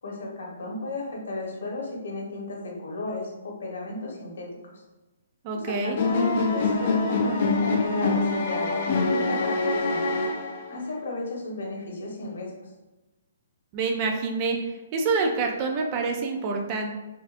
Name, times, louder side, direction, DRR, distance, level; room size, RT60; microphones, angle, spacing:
voice 1, 0.0-4.8 5.5-10.2 10.7-12.7, left 2 dB, 70° left, -2 dB, 1.2 m, -34 dB
voice 2, 5.4-6.0 13.7-14.6 14.9-16.9, right 4 dB, 25° right, 3 dB, 0.4 m, -26 dB
sound 1, 6.0-10.8, left 3 dB, 35° left, 0.4 m, -25 dB
4.4 x 2.5 x 2.5 m, 1.1 s
hypercardioid pair, 175°, 0 cm